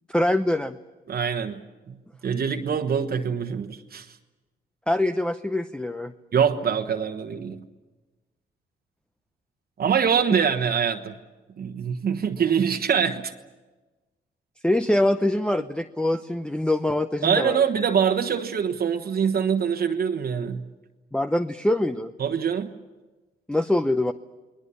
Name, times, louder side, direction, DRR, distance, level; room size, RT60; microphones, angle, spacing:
voice 1, 0.1-0.8 4.9-6.1 14.6-17.6 21.1-22.1 23.5-24.1, left 1 dB, 5° left, 9 dB, 0.7 m, -24 dB
voice 2, 1.1-1.6 1.9-2.0 2.2-4.1 6.3-7.6 9.8-11.2 11.6-13.3 17.2-20.6 22.2-22.7, right 7 dB, 50° right, 5 dB, 1.3 m, -24 dB
29.5 x 20.5 x 7.1 m, 1.2 s
cardioid pair, 90°, 20 cm